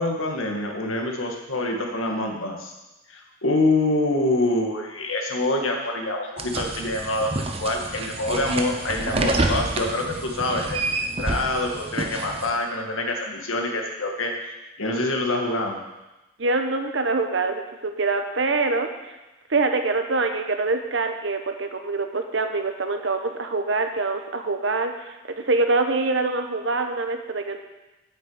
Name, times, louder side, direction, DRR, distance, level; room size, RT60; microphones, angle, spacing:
voice 1, 0.0-2.7 3.1-10.8 11.2-14.3 14.8-15.8, left 2 dB, 90° left, 1 dB, 1.9 m, -25 dB
sound 1, 6.4-12.5, right 2 dB, 30° right, 0.8 m, -28 dB
voice 2, 16.4-19.2 19.5-27.6, right 3 dB, 65° right, 6 dB, 1.0 m, -25 dB
8.9 x 6.2 x 7.9 m, 1.0 s
head